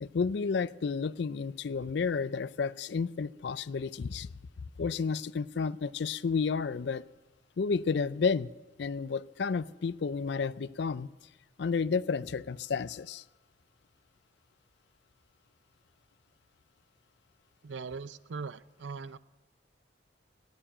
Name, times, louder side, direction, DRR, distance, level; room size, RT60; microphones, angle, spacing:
voice 1, 0.0-4.3 4.8-7.0 7.6-8.5 8.8-11.1 11.6-13.2, left 5 dB, 60° left, 18 dB, 0.4 m, -31 dB
voice 2, 17.6-19.2, right 4 dB, 70° right, 16 dB, 0.5 m, -40 dB
17.5 x 7.3 x 8.9 m, 1.2 s
head